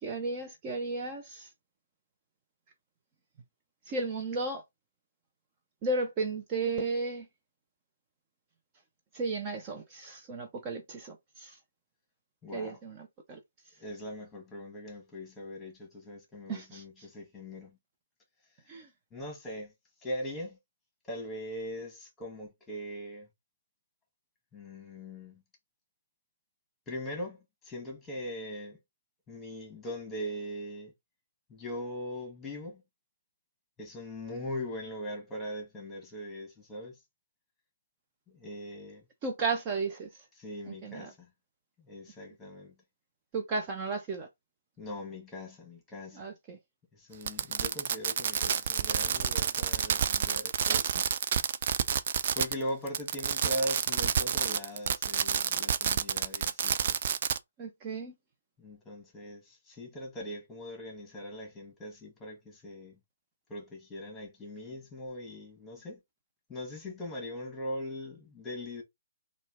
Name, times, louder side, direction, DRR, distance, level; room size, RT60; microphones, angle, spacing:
voice 1, 0.0-1.5 3.9-4.6 5.8-7.3 9.1-11.6 12.5-13.4 16.5-16.8 18.7-18.9 39.2-40.2 40.6-41.1 43.3-44.3 46.1-46.6 57.6-58.1, right 3 dB, 25° right, 0.8 m, -34 dB
voice 2, 12.4-12.8 13.8-17.8 19.1-19.7 20.0-20.6 21.0-23.3 24.5-25.4 26.9-28.8 29.3-30.9 31.5-32.8 33.8-37.0 38.3-39.0 40.4-41.3 41.8-42.7 44.8-46.3 46.9-51.1 52.3-57.1 58.6-63.0 63.5-66.0 66.5-68.8, equal, 10° left, 1.7 m, -40 dB
Fireworks, 47.2-52.6 52.9-57.4, right 8 dB, 45° right, 0.4 m, -29 dB
4.1 x 2.5 x 3.6 m
figure-of-eight pair, 135°, 0 cm